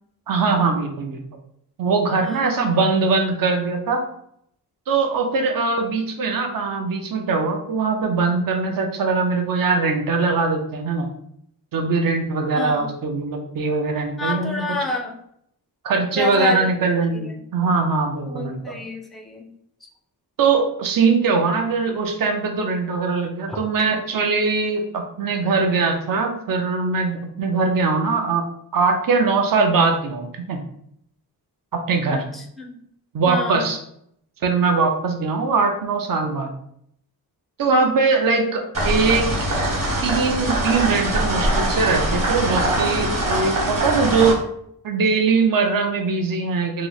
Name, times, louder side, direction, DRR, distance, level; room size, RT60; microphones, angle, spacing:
voice 1, 0.3-1.2 1.8-4.0 4.9-11.1 11.7-14.8 15.8-18.8 20.4-28.4 28.7-30.6 31.7-32.2 33.1-33.8 34.4-36.5 37.6-39.3 40.0-44.4 44.8-46.9, right 4 dB, 60° right, 4 dB, 0.6 m, -21 dB
voice 2, 2.2-2.8 12.5-13.0 14.2-15.2 16.1-16.7 17.1-17.4 18.3-19.5 19.8-19.9 23.5-23.9 32.1-32.7 33.3-33.7, left 2 dB, ahead, 1 dB, 0.4 m, -28 dB
sound 1, 38.7-44.3, right 1 dB, 40° right, 1.1 m, -22 dB
3.1 x 2.0 x 3.9 m, 0.70 s
wide cardioid pair, 115°, 39 cm